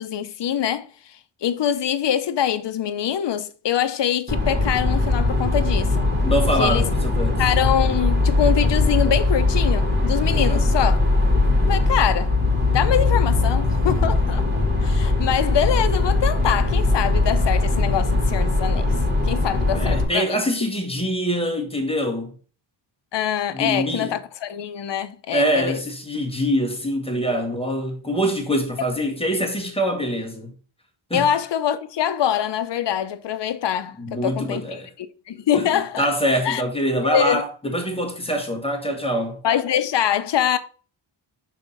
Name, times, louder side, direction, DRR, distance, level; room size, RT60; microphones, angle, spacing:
voice 1, 0.0-6.1 6.6-6.9 7.4-11.0 11.6-12.3 12.7-14.4 14.8-18.9 19.2-20.4 23.1-25.8 31.1-36.1 36.4-36.6 37.0-37.4 39.4-40.6, left 9 dB, 60° left, 0.7 m, -24 dB
sound 1, 4.3-20.0, left 2 dB, 20° right, 2.3 m, -20 dB
voice 2, 6.2-7.4 10.3-10.7 19.7-22.3 23.5-24.1 25.3-30.5 31.1-31.3 34.0-34.9 35.5-39.4, equal, 10° left, 1.5 m, -24 dB
5.7 x 3.6 x 5.5 m
wide cardioid pair, 105°, 48 cm